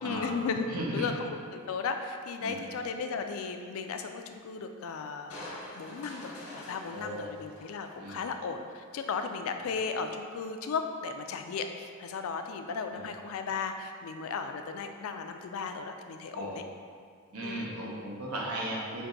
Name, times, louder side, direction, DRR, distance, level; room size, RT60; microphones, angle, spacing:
voice 1, 0.0-5.4 5.8-16.6 17.4-17.7, left 5 dB, 70° left, 6 dB, 0.3 m, -35 dB
voice 2, 0.7-1.1 2.4-2.6 6.9-7.3 8.0-8.2 12.9-13.0 16.3-16.6 17.3-19.0, right 1 dB, 90° right, -4 dB, 0.9 m, -36 dB
Crushing, 5.3-8.7 9.1-9.2, left 1 dB, 90° left, 1.1 m, -46 dB
4.5 x 2.6 x 3.8 m, 2.1 s
head